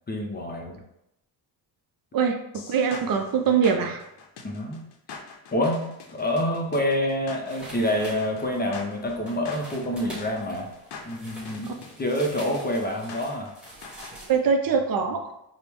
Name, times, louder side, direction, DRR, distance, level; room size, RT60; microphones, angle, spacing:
voice 1, 0.1-0.8 4.4-4.8 5.5-10.7 11.0-13.5, left 1 dB, 25° left, 0 dB, 0.4 m, -27 dB
voice 2, 2.1-4.0 14.3-15.2, right 6 dB, 55° right, 4 dB, 0.5 m, -23 dB
sound 1, 2.5-14.1, left 5 dB, 65° left, 0.6 m, -44 dB
sound 2, 7.5-14.4, right 1 dB, ahead, 1.1 m, -45 dB
4.5 x 2.0 x 3.4 m, 0.83 s
cardioid pair, 135°, 44 cm